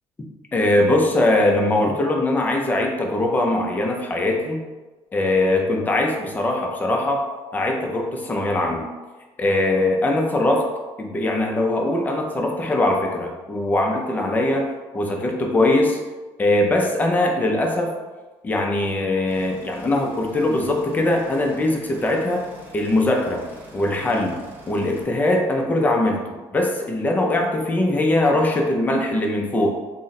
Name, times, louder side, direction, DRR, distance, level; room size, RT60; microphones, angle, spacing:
voice 1, 0.5-4.6 5.1-8.9 9.4-10.7 11.0-14.7 14.9-16.0 16.4-17.9 18.4-22.5 22.7-23.4 23.7-24.4 24.7-29.7, left 1 dB, 15° left, 1 dB, 0.5 m, -21 dB
sound 1, 19.3-25.0, equal, 20° right, 0.7 m, -45 dB
3.8 x 2.1 x 4.0 m, 1.2 s
cardioid pair, 155°, 10 cm